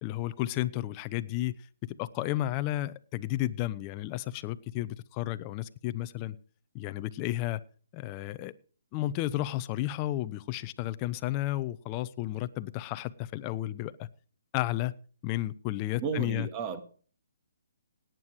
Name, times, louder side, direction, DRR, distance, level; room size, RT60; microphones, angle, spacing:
voice 1, 0.0-1.6 1.8-6.4 6.7-7.6 7.9-8.5 8.9-14.1 14.5-14.9 15.2-16.5, left 15 dB, 25° left, 0.7 m, -32 dB
voice 2, 16.0-16.8, right 6 dB, 25° right, 1.9 m, -33 dB
17.5 x 9.3 x 4.8 m
hypercardioid pair, 150°, 0 cm